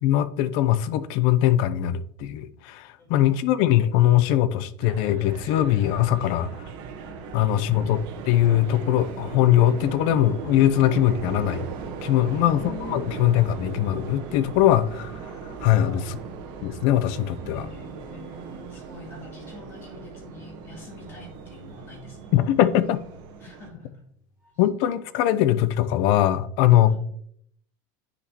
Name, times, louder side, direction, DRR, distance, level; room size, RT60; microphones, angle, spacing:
voice 1, 0.0-6.5 7.3-11.7 12.0-12.6 12.9-15.2 15.6-16.0 16.6-17.7 22.3-23.0 24.6-27.0, left 12 dB, 50° left, 0.5 m, -21 dB
voice 2, 3.0-3.5 6.1-6.4 7.1-7.8 12.3-13.1 15.7-16.2 17.5-22.3 23.4-24.0 26.9-27.0, left 3 dB, 25° left, 2.7 m, -44 dB
sound 1, 4.8-23.7, right 6 dB, 45° right, 1.0 m, -39 dB
sound 2, 8.2-24.9 25.2-25.5, equal, 5° right, 2.1 m, -50 dB
9.6 x 5.1 x 2.8 m
supercardioid pair, 165°, 10 cm